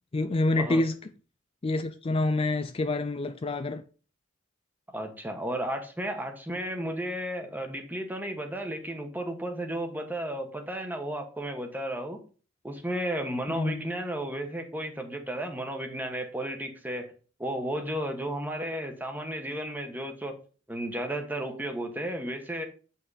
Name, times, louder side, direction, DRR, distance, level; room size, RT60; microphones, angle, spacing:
voice 1, 0.1-0.9 1.6-3.8 13.5-13.8, left 2 dB, 30° left, 0.4 m, -27 dB
voice 2, 4.9-12.2 12.6-17.1 17.4-20.4 20.7-22.7, right 1 dB, 10° right, 1.2 m, -33 dB
8.3 x 5.7 x 4.0 m
head